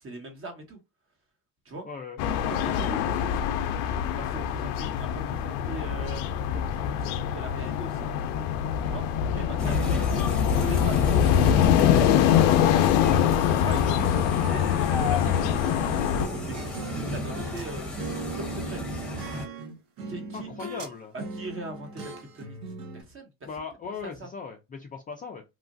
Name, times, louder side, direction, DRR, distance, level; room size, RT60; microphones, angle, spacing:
voice 1, 0.0-0.8 1.6-1.9 2.5-3.5 4.2-8.1 8.8-9.1 9.3-10.2 10.6-11.4 11.7-12.9 13.6-14.2 14.5-15.6 16.3-17.9 18.4-18.8 20.1-20.5 21.1-22.6 22.9-23.5 24.0-24.3, right 1 dB, 30° right, 1.0 m, -40 dB
voice 2, 1.8-2.2 9.3-10.0 13.8-14.1 20.3-21.1 23.4-25.4, left 5 dB, 20° left, 0.3 m, -38 dB
sound 1, 2.2-16.3, left 9 dB, 90° left, 0.5 m, -24 dB
sound 2, 9.6-19.4, left 1 dB, ahead, 0.9 m, -33 dB
sound 3, 15.6-17.7 18.0-20.9 21.2-23.0, right 3 dB, 70° right, 0.9 m, -39 dB
3.0 x 2.4 x 2.5 m
cardioid pair, 115°, 41 cm